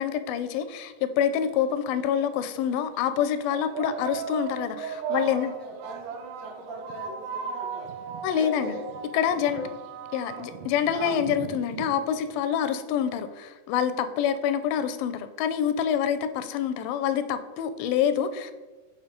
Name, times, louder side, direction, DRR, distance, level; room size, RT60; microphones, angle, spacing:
voice 1, 0.0-5.5 8.2-8.7 9.1-9.6 10.1-18.5, left 8 dB, 85° left, 10 dB, 2.3 m, -26 dB
sound 1, 1.4-1.5 2.4-2.6 3.5-12.4, right 6 dB, 80° right, 2.0 m, -37 dB
voice 2, 5.1-8.9 9.3-9.8 10.9-11.2, right 1 dB, 60° right, -1 dB, 1.9 m, -41 dB
8.2 x 2.9 x 5.1 m, 1.2 s
omnidirectional pair, 4.1 m